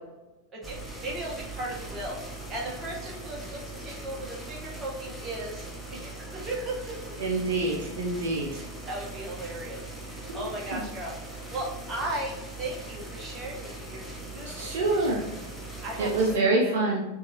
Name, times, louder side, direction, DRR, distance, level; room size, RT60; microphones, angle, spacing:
voice 1, 0.5-2.2 2.5-7.1 8.8-15.3 15.8-16.9, right 1 dB, 25° right, -3 dB, 1.5 m, -37 dB
sound 1, 0.6-16.4, right 2 dB, 5° right, 0.9 m, -40 dB
voice 2, 7.2-8.6 10.3-10.4 10.7-10.8 14.4-15.3 16.0-17.1, right 2 dB, 55° right, -1 dB, 0.7 m, -26 dB
6.2 x 2.7 x 3.0 m, 1.0 s
figure-of-eight pair, 90°, 0 cm